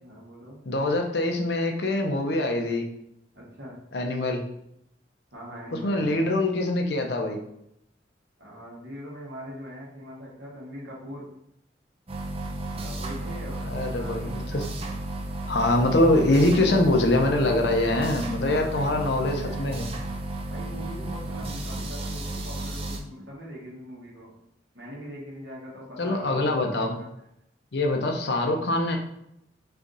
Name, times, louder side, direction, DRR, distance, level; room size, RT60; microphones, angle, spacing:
voice 1, 0.0-0.6 3.3-3.8 5.3-6.3 8.4-11.3 12.7-14.5 18.5-19.7 20.5-24.3 24.7-27.1, equal, 70° right, -4 dB, 1.6 m, -42 dB
voice 2, 0.7-2.8 3.9-4.4 5.8-7.4 13.6-14.7 15.5-19.9 26.0-26.9 27.7-29.0, left 1 dB, 65° left, 3 dB, 0.6 m, -24 dB
sound 1, 12.1-23.0, right 1 dB, 35° right, 0.5 m, -33 dB
3.6 x 3.4 x 3.9 m, 0.77 s
head